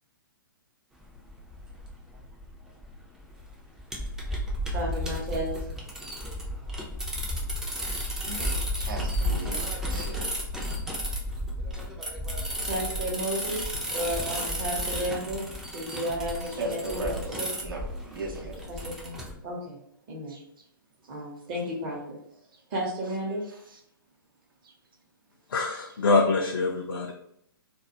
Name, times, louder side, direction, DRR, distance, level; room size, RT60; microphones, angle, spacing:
sound 1, 1.0-19.3, equal, 5° right, 0.4 m, -33 dB
voice 1, 4.7-5.6 12.6-17.5 18.7-19.8 20.1-20.4 21.1-22.2 22.7-23.4, right 1 dB, 35° right, -1 dB, 0.7 m, -33 dB
voice 2, 8.2-10.3 16.5-18.6 20.3-20.4 24.6-24.7, right 2 dB, 70° right, 0 dB, 0.6 m, -37 dB
voice 3, 25.5-27.1, left 3 dB, 65° left, 1 dB, 0.4 m, -24 dB
2.2 x 2.1 x 2.8 m, 0.73 s
figure-of-eight pair, 120°, 12 cm